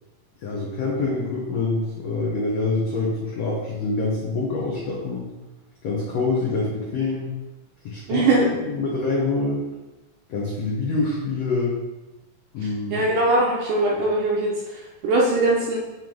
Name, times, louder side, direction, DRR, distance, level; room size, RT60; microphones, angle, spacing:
voice 1, 0.4-5.3 5.8-7.3 7.8-8.3 8.7-9.6 10.3-11.8 12.5-13.0, left 3 dB, 80° left, -4 dB, 1.5 m, -25 dB
voice 2, 8.1-8.5 12.9-15.8, right 2 dB, 75° right, -3 dB, 2.0 m, -21 dB
8.9 x 3.1 x 3.8 m, 1.1 s
omnidirectional pair, 4.3 m